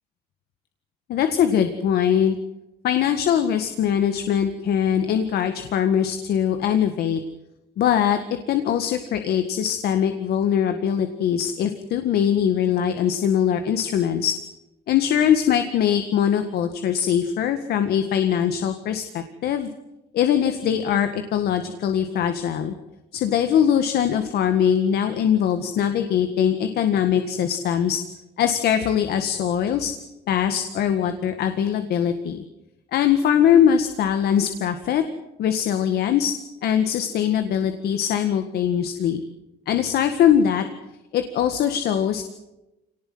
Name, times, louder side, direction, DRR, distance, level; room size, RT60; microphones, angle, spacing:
voice 1, 1.1-2.4 2.8-7.2 7.8-8.2 8.5-14.3 14.9-19.7 20.1-22.8 23.1-28.0 28.4-29.9 30.3-32.4 32.9-35.0 35.4-36.3 36.6-39.2 39.7-40.6 41.1-42.2, left 9 dB, 70° left, 7 dB, 1.8 m, -21 dB
25.5 x 19.0 x 7.9 m, 0.94 s
cardioid pair, 110°, 17 cm